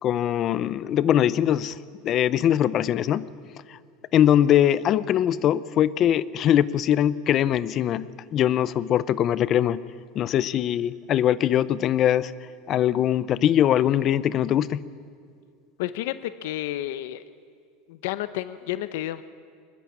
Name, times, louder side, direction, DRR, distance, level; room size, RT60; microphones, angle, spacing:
voice 1, 0.0-1.8 2.0-3.3 3.7-3.8 4.1-9.8 10.1-12.3 12.7-14.8, left 11 dB, 30° left, 18 dB, 0.5 m, -22 dB
voice 2, 15.8-17.2 17.9-19.2, left 14 dB, 65° left, 13 dB, 0.8 m, -31 dB
22.5 x 21.0 x 9.7 m, 2.2 s
supercardioid pair, 180°, 0 cm